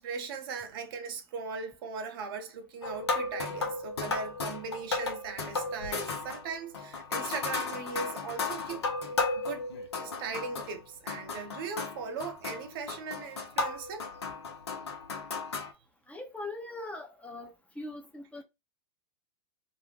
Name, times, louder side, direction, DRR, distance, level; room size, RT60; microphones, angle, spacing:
voice 1, 0.0-8.9 9.3-9.7 10.0-14.1, right 5 dB, 60° right, 0.7 m, -39 dB
sound 1, 2.8-10.8 11.1-15.7, left 3 dB, 85° left, 0.7 m, -35 dB
voice 2, 16.1-18.4, left 2 dB, 10° left, 0.6 m, -41 dB
2.5 x 2.1 x 3.2 m
hypercardioid pair, 100°, 14 cm